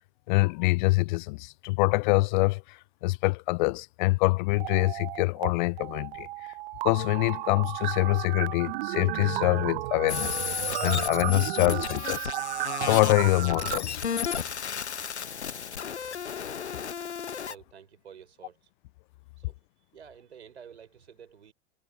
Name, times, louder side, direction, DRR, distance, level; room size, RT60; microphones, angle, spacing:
voice 1, 0.3-6.3 6.8-10.4 10.8-12.3 12.8-14.0, left 23 dB, 50° left, 0.4 m, -25 dB
sound 1, 4.5-5.5 5.8-13.8, right 19 dB, 55° right, 0.5 m, -33 dB
sound 2, 10.1-17.5, left 7 dB, 85° left, 0.9 m, -34 dB
voice 2, 17.5-18.7 19.4-19.6 19.9-21.5, right 7 dB, 80° right, 4.8 m, -50 dB
figure-of-eight pair, 90°, 33 cm